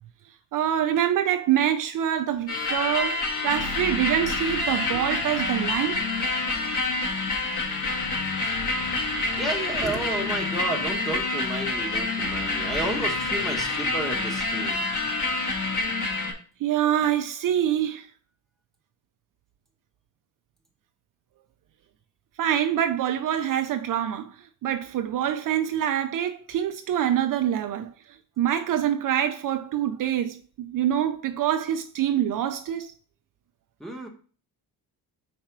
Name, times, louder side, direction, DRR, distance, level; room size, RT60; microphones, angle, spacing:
voice 1, 0.5-6.0 16.6-18.1 22.4-27.9 28.4-32.9, right 10 dB, 55° right, 0.5 m, -25 dB
sound 1, 2.5-16.3, left 2 dB, 45° left, 1.6 m, -27 dB
voice 2, 9.4-14.9 33.8-34.1, right 2 dB, ahead, 1.0 m, -32 dB
4.9 x 4.3 x 5.8 m
cardioid pair, 170°, 39 cm